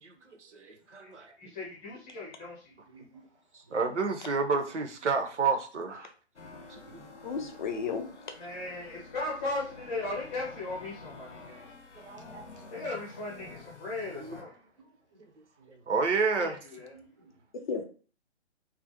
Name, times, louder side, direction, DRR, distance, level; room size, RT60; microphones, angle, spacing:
voice 1, 0.4-1.3 3.7-6.1 6.7-6.8 12.0-12.4 14.2-14.4 15.9-16.6, right 4 dB, 80° right, 0.6 m, -30 dB
voice 2, 1.4-2.7 8.4-11.7 12.7-14.6 16.4-16.9, left 2 dB, 10° left, 0.7 m, -37 dB
voice 3, 2.7-3.3 3.7-3.8 6.5-7.2 11.3-11.4 11.9-12.8 14.8-15.9 16.9-17.4, right 4 dB, 30° right, 0.4 m, -59 dB
sound 1, 6.4-14.4, left 3 dB, 85° left, 0.6 m, -49 dB
voice 4, 7.2-8.3 17.5-17.8, left 5 dB, 45° left, 0.4 m, -34 dB
2.4 x 2.1 x 2.7 m
figure-of-eight pair, 135°, 35 cm